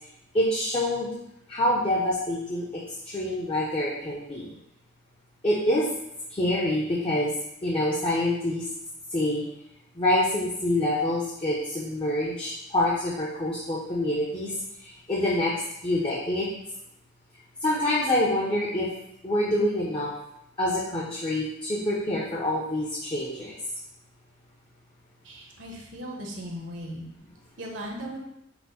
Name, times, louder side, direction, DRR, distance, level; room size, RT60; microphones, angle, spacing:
voice 1, 0.3-1.1 1.5-4.5 5.4-5.9 6.3-7.3 7.6-8.7 9.1-9.4 10.0-14.5 14.8-15.5 15.8-16.5 17.6-18.9 19.2-20.1 20.6-23.5, left 1 dB, 25° left, -5 dB, 0.6 m, -26 dB
voice 2, 25.2-27.0 27.6-28.2, equal, 65° right, 0 dB, 0.9 m, -37 dB
5.8 x 2.1 x 4.0 m, 0.81 s
head